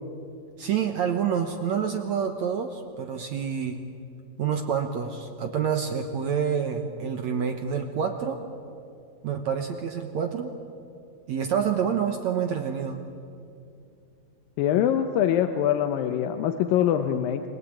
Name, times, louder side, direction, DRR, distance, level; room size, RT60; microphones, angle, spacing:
voice 1, 0.6-3.8 4.4-8.4 9.2-10.5 11.3-13.0, right 7 dB, 65° right, 5 dB, 1.8 m, -27 dB
voice 2, 14.6-17.4, left 10 dB, 75° left, 8 dB, 2.3 m, -23 dB
29.0 x 22.0 x 8.8 m, 2.5 s
omnidirectional pair, 4.7 m